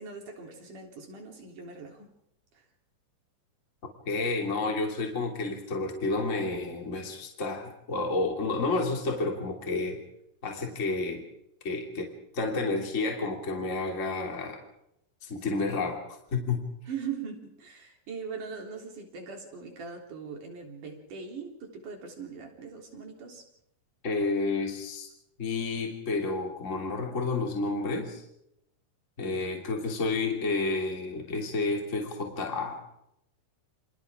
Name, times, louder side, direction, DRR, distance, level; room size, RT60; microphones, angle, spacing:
voice 1, 0.0-2.1 16.9-23.5, right 6 dB, 75° right, 2 dB, 5.2 m, -40 dB
voice 2, 4.1-10.0 10.4-11.2 11.6-14.6 15.2-16.0 16.3-16.6 24.0-25.1 25.4-28.2 29.2-32.8, left 3 dB, 25° left, 2 dB, 3.1 m, -30 dB
29.0 x 27.5 x 3.8 m, 0.77 s
omnidirectional pair, 3.7 m